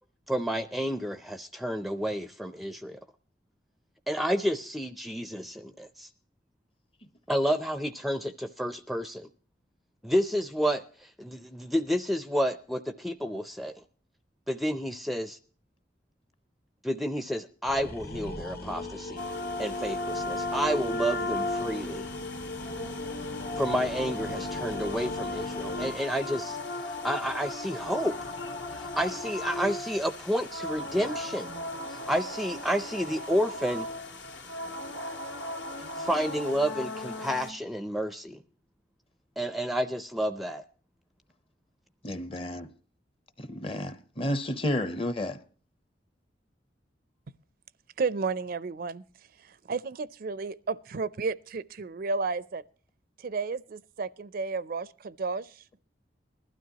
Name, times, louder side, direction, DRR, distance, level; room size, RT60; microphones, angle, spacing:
voice 1, 0.3-3.0 4.1-6.1 7.3-9.3 10.0-13.7 14.5-15.4 16.8-19.2 19.6-22.1 23.6-26.6 26.9-28.3 28.7-31.5 31.9-33.9 36.0-38.4 39.4-40.6, equal, ahead, 0.5 m, -30 dB
sound 1, 17.7-25.9, left 2 dB, 60° left, 1.8 m, -38 dB
sound 2, 19.2-37.5, left 2 dB, 75° left, 2.1 m, -36 dB
voice 2, 42.0-42.7 43.4-45.4, left 1 dB, 30° left, 0.9 m, -32 dB
voice 3, 48.0-49.0 49.4-52.6 53.2-55.5, right 4 dB, 55° right, 0.5 m, -32 dB
20.0 x 12.5 x 2.9 m
head